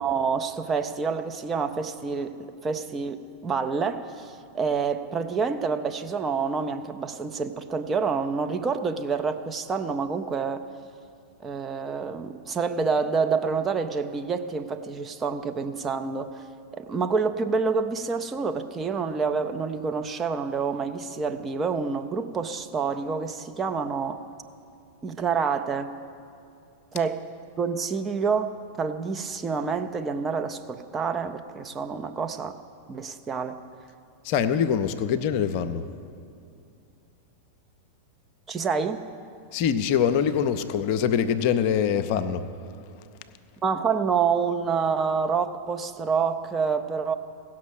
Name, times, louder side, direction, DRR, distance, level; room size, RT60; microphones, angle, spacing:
voice 1, 0.0-10.7 11.4-16.4 16.7-24.2 25.0-25.9 26.9-27.2 27.6-32.6 32.9-33.6 38.5-39.0 43.6-47.1, right 5 dB, 20° right, 7 dB, 0.5 m, -27 dB
voice 2, 34.2-35.9 39.5-42.5, left 8 dB, 45° left, 10 dB, 0.5 m, -24 dB
16.0 x 6.0 x 6.3 m, 2.5 s
figure-of-eight pair, 90°, 0 cm